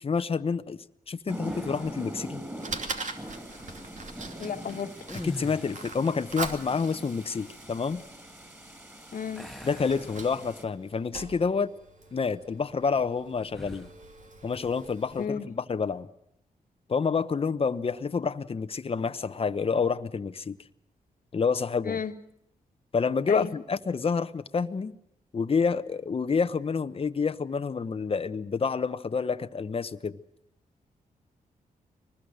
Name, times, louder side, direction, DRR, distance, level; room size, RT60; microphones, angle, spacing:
voice 1, 0.0-2.4 5.2-8.0 9.6-11.7 12.1-13.9 14.4-16.1 16.9-20.6 21.3-22.0 22.9-24.9 25.3-30.2, left 5 dB, 40° left, 11 dB, 1.0 m, -28 dB
sound 1, 1.3-10.6, right 1 dB, 15° right, 5.7 m, -42 dB
sound 2, 1.4-2.1 5.0-6.1 9.4-10.8 11.3-11.5 13.5-14.0, left 1 dB, ahead, 1.4 m, -43 dB
Fire, 1.8-15.2, right 3 dB, 55° right, 2.6 m, -43 dB
voice 2, 4.4-4.9 9.1-9.5 15.2-15.5 21.8-22.1 23.3-23.5, left 6 dB, 65° left, 7 dB, 1.6 m, -32 dB
23.5 x 20.5 x 6.5 m, 0.79 s
cardioid pair, 70°, 15 cm